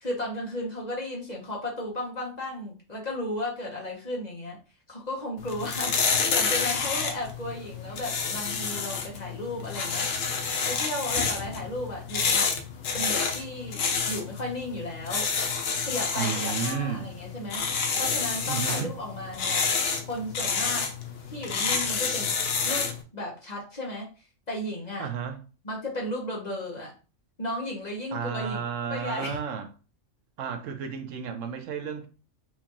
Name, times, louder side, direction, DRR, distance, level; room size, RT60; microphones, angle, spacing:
voice 1, 0.0-4.6 4.9-10.1 10.7-12.6 12.9-15.3 15.8-17.6 18.0-19.7 20.1-20.9 21.3-22.3 22.6-24.1 24.5-25.1 25.6-26.9 27.4-28.6 28.9-29.4, left 1 dB, 35° left, 1.0 m, -34 dB
sound 1, 5.4-23.0, left 5 dB, 60° left, 0.8 m, -29 dB
voice 2, 16.2-17.1 18.5-18.9 25.0-25.4 28.1-29.7 30.4-32.1, right 7 dB, 80° right, 1.0 m, -32 dB
4.5 x 2.5 x 2.9 m
omnidirectional pair, 1.3 m